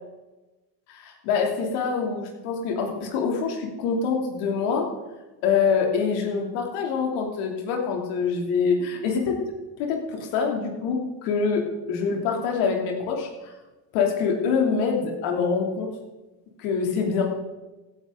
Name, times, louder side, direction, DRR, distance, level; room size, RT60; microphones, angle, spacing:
voice 1, 0.9-4.9 5.4-9.4 9.8-13.5 13.9-15.9 16.6-17.3, left 5 dB, 85° left, 1 dB, 3.0 m, -25 dB
16.0 x 10.0 x 3.9 m, 1.1 s
supercardioid pair, 75°, 48 cm